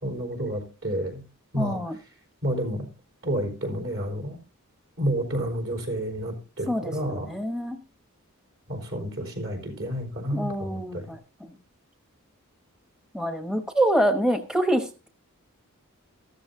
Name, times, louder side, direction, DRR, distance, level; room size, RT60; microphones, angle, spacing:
voice 1, 0.0-1.2 1.5-1.8 2.4-2.9 3.2-4.4 5.0-7.3 8.7-11.1, right 1 dB, 65° right, 4.2 m, -30 dB
voice 2, 1.5-2.0 6.7-7.8 10.3-11.6 13.1-15.1, right 1 dB, 5° right, 0.9 m, -26 dB
14.5 x 13.5 x 2.7 m
head